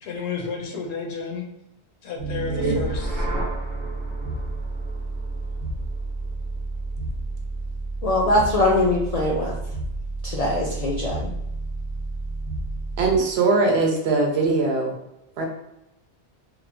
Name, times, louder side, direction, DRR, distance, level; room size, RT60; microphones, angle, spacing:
voice 1, 0.0-1.4 2.0-3.3, left 5 dB, 80° left, 1 dB, 0.9 m, -31 dB
sound 1, 2.2-13.3, right 2 dB, 50° right, 0.8 m, -30 dB
voice 2, 8.0-9.5 10.2-11.3, left 1 dB, 60° left, -3 dB, 0.4 m, -22 dB
voice 3, 13.0-14.9 15.4-15.5, right 3 dB, 70° right, 1 dB, 0.8 m, -21 dB
3.0 x 2.1 x 2.5 m, 0.86 s
omnidirectional pair, 1.1 m